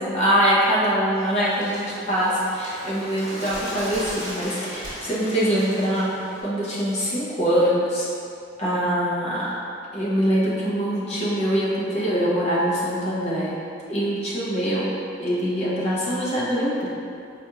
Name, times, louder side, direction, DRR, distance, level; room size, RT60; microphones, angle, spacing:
voice 1, 0.0-6.1 6.4-8.1 8.6-9.6 9.9-13.6 13.9-14.9 15.2-16.9, equal, 35° left, -7 dB, 0.7 m, -23 dB
Bird, 1.1-6.4, equal, 40° right, 1.2 m, -36 dB
4.2 x 2.8 x 2.3 m, 2.5 s
head